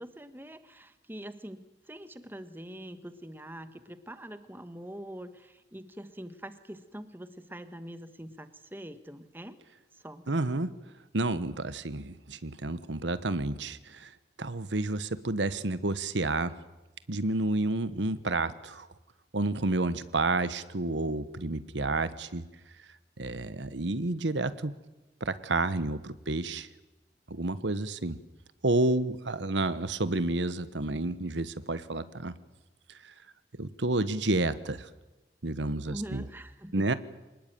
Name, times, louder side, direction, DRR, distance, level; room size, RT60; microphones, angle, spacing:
voice 1, 0.0-9.6 9.9-10.4 35.9-36.9, equal, 10° right, 10 dB, 1.4 m, -44 dB
voice 2, 10.3-10.7 11.1-14.1 14.4-16.5 17.1-18.9 19.3-22.4 23.2-24.8 25.2-26.7 27.3-28.2 28.6-32.3 33.0-33.1 33.6-34.9 35.4-36.2 36.7-36.9, right 2 dB, 90° right, 14 dB, 1.2 m, -30 dB
25.5 x 19.5 x 9.2 m, 1.1 s
head